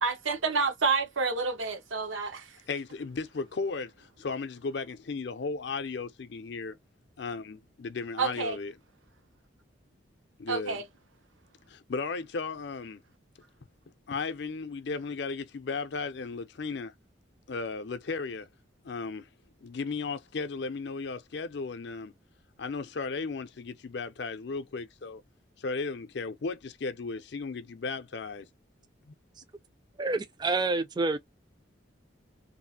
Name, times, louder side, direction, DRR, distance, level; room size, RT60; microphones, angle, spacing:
voice 1, 0.0-2.6 8.2-8.6 10.5-10.8, right 4 dB, 85° right, 0.8 m, -29 dB
voice 2, 2.7-6.8 7.2-8.7 10.4-10.8 11.7-13.0 14.1-16.9 17.5-18.5 18.8-19.3 19.6-22.1 22.6-25.2 25.6-28.4 29.1-29.2, left 4 dB, 60° left, 0.5 m, -35 dB
voice 3, 30.0-31.2, right 3 dB, 20° right, 0.3 m, -28 dB
2.7 x 2.4 x 2.7 m
head